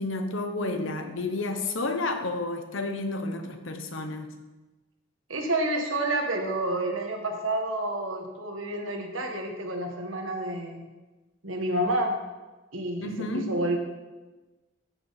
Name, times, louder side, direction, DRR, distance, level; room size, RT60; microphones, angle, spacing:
voice 1, 0.0-4.3 13.0-13.5, left 2 dB, 65° left, 6 dB, 1.0 m, -31 dB
voice 2, 5.3-10.8 11.4-12.1 12.7-13.8, right 1 dB, 75° right, 3 dB, 1.6 m, -29 dB
13.5 x 6.3 x 4.2 m, 1.2 s
head